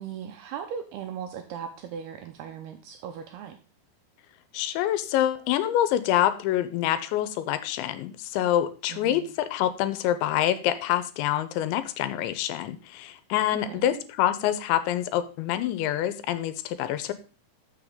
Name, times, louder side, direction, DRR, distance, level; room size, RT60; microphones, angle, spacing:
voice 1, 0.0-3.6 8.9-9.3 13.7-14.0, right 8 dB, 80° right, 6 dB, 2.4 m, -38 dB
voice 2, 4.5-17.1, left 12 dB, 85° left, 12 dB, 3.0 m, -26 dB
13.0 x 6.7 x 3.7 m, 0.37 s
omnidirectional pair, 5.3 m